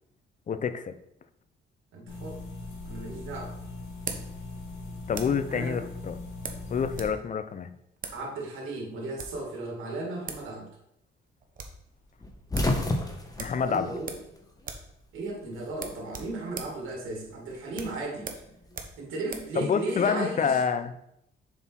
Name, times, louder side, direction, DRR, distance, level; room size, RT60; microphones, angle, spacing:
voice 1, 0.5-1.0 5.1-6.2 6.7-7.7 13.4-13.9 19.6-20.9, left 6 dB, 40° left, 12 dB, 0.6 m, -27 dB
voice 2, 1.9-2.4 2.8-3.5 5.5-5.8 8.1-10.6 13.6-14.2 15.1-18.3 19.0-20.6, right 2 dB, 85° right, -1 dB, 2.1 m, -35 dB
sound 1, 2.1-7.1, left 2 dB, 85° left, 2.0 m, -40 dB
sound 2, 2.6-5.5 6.4-7.2 7.4-7.5 8.0-8.2 9.0-9.5 10.0-10.1 10.3-10.5 10.8-10.9 11.2-11.8 12.2-12.3 12.5-12.8 13.4-14.3 14.6-14.9 15.2-15.3 15.7-19.5, right 5 dB, 45° right, 1.0 m, -41 dB
sound 3, 12.2-14.7 15.0-16.1 17.3-18.7, left 1 dB, 20° left, 1.2 m, -31 dB
7.0 x 4.1 x 4.4 m, 0.78 s
cardioid pair, 90°, 20 cm